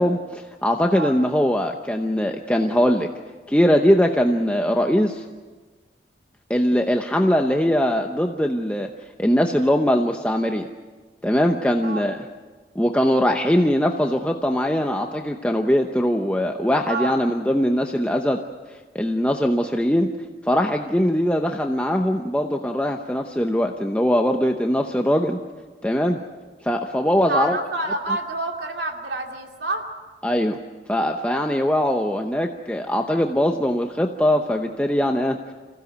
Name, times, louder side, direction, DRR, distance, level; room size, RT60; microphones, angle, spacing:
voice 1, 0.0-3.1 3.5-5.2 6.5-8.9 9.2-10.7 11.2-12.2 12.8-18.4 18.9-20.1 20.4-25.4 25.8-26.2 26.6-27.6 30.2-30.6 30.9-35.4, equal, 5° left, 3 dB, 0.8 m, -21 dB
voice 2, 27.3-29.9, right 2 dB, 70° right, 3 dB, 2.7 m, -27 dB
27.0 x 16.0 x 8.0 m, 1.4 s
head